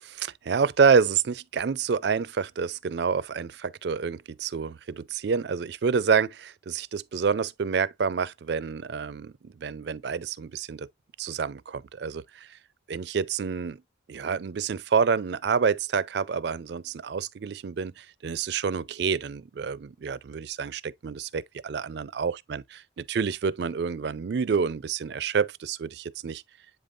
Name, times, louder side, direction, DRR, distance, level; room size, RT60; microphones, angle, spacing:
voice 1, 0.0-10.9 11.2-12.6 12.9-13.8 14.1-26.4, right 6 dB, 55° right, 0.4 m, -28 dB
7.9 x 5.2 x 2.4 m
head